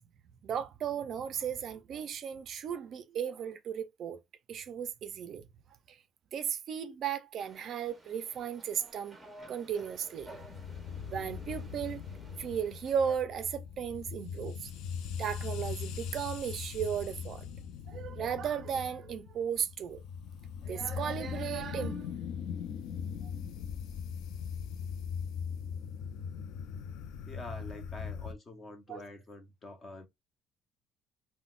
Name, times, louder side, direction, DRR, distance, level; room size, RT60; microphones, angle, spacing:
voice 1, 0.4-4.2 4.5-5.4 5.9-6.0 6.3-9.2 9.5-10.3 11.1-12.0 12.4-14.7 15.2-17.4 17.9-20.0 20.6-22.3 23.2-23.3 28.9-29.0, right 8 dB, 45° right, 0.4 m, -35 dB
sound 1, 7.4-13.2, right 1 dB, 10° right, 0.7 m, -54 dB
sound 2, 10.2-28.3, left 7 dB, 70° left, 0.4 m, -40 dB
voice 2, 27.3-30.1, left 1 dB, 30° left, 0.7 m, -46 dB
3.8 x 2.1 x 2.3 m
cardioid pair, 155°, 0 cm